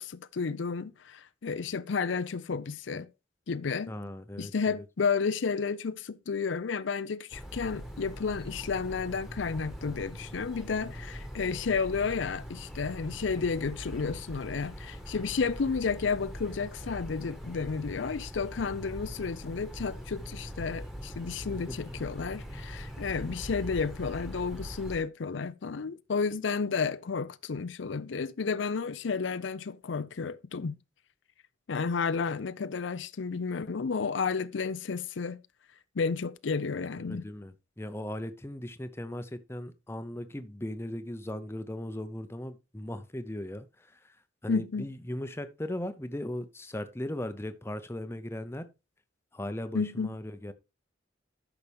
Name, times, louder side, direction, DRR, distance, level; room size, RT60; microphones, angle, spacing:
voice 1, 0.0-3.1 3.5-3.9 4.4-30.8 31.7-35.4 36.0-37.2 44.5-44.9 49.7-50.1, left 5 dB, 75° left, 0.5 m, -32 dB
voice 2, 3.9-4.8 21.5-21.8 37.0-44.2 44.4-48.7 49.3-50.5, left 1 dB, 15° left, 0.7 m, -38 dB
sound 1, 7.3-25.0, equal, ahead, 1.4 m, -42 dB
12.5 x 5.9 x 3.4 m
head